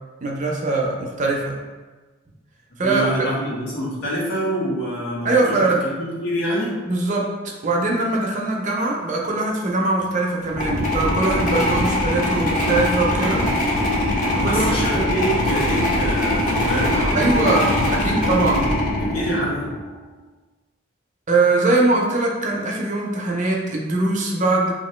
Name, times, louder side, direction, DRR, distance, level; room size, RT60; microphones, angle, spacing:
voice 1, 0.2-1.6 2.8-3.3 5.2-5.8 6.9-7.3 7.6-13.4 14.3-14.8 17.1-18.7 19.3-19.4 21.3-24.7, right 2 dB, 40° right, -1 dB, 0.5 m, -21 dB
voice 2, 2.8-6.7 14.4-18.4 19.0-19.7, right 1 dB, 85° left, -7 dB, 1.4 m, -26 dB
sound 1, 10.5-19.8, left 1 dB, 40° left, 0.7 m, -22 dB
2.9 x 2.6 x 4.3 m, 1.3 s
head